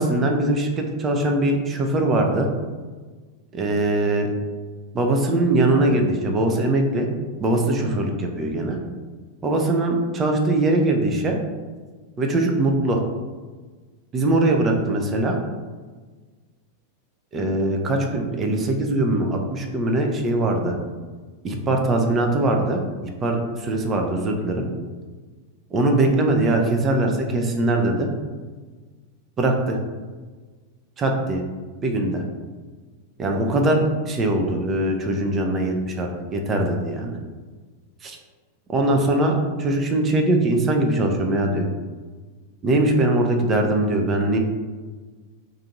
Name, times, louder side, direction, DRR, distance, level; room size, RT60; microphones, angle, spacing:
voice 1, 0.0-2.5 3.5-4.3 4.9-7.1 7.4-8.8 9.4-11.4 12.2-13.0 14.1-15.4 17.3-20.8 21.4-22.8 23.2-24.7 25.7-28.1 29.4-29.8 31.0-31.4 31.8-32.2 33.2-37.2 38.0-38.2 38.7-41.7 42.6-44.4, right 2 dB, 25° right, 2 dB, 0.5 m, -21 dB
2.6 x 2.5 x 4.0 m, 1.4 s
figure-of-eight pair, 90°, 0 cm